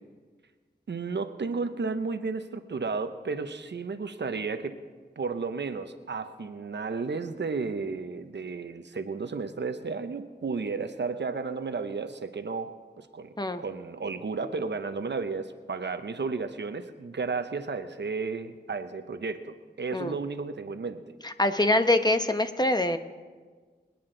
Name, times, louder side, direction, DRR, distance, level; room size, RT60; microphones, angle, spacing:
voice 1, 0.9-4.8 5.2-12.7 13.0-21.2, right 4 dB, 80° right, 9 dB, 0.8 m, -33 dB
voice 2, 21.2-23.0, left 1 dB, 25° left, 8 dB, 0.9 m, -24 dB
24.5 x 9.5 x 3.9 m, 1.5 s
wide cardioid pair, 55°, 18 cm